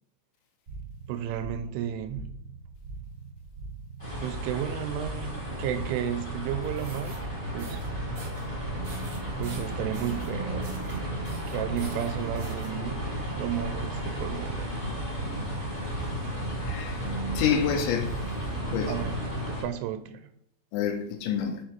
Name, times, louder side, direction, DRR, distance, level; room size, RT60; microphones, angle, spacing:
sound 1, 0.7-18.7, right 3 dB, 30° right, 2.4 m, -43 dB
voice 1, 1.1-2.3 4.2-7.2 7.5-7.8 9.4-11.1 11.5-14.7 18.9-19.2 19.5-20.3, right 10 dB, 85° right, 2.9 m, -33 dB
sound 2, 4.0-19.6, equal, 15° left, 1.7 m, -33 dB
sound 3, 6.6-7.2 7.6-7.9 8.2-8.5 8.8-10.3 10.6-11.0 11.2-12.7, right 3 dB, 60° right, 1.8 m, -46 dB
voice 2, 16.6-17.0 17.3-18.2 18.7-18.9 20.7-21.6, left 8 dB, 80° left, 2.9 m, -27 dB
6.9 x 4.8 x 4.4 m
omnidirectional pair, 5.6 m